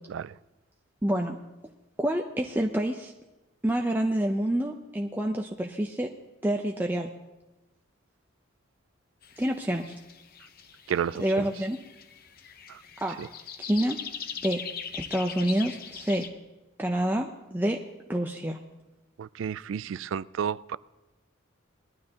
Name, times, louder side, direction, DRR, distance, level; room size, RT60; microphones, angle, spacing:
voice 1, 1.0-1.4 2.0-3.1 3.6-6.1 6.4-7.1 9.4-9.9 11.2-11.8 13.0-13.2 13.6-14.0 14.4-14.7 14.9-16.3 16.8-17.8 18.1-18.6, right 1 dB, 10° right, 0.5 m, -27 dB
sound 1, 9.2-16.3, left 7 dB, 45° left, 0.8 m, -41 dB
voice 2, 10.9-11.5 12.7-12.8 13.2-13.3 19.2-20.8, right 8 dB, 65° right, 0.3 m, -31 dB
20.5 x 12.0 x 2.9 m
head